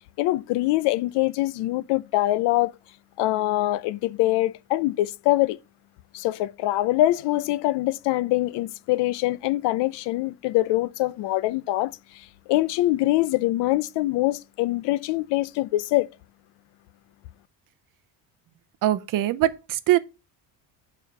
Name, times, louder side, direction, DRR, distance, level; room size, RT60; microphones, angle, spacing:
voice 1, 0.2-2.7 3.2-5.6 6.1-11.9 12.5-16.1, left 17 dB, 70° left, 0.6 m, -24 dB
voice 2, 18.8-20.0, right 14 dB, 50° right, 0.6 m, -22 dB
7.1 x 4.5 x 6.6 m
cardioid pair, 165°, 42 cm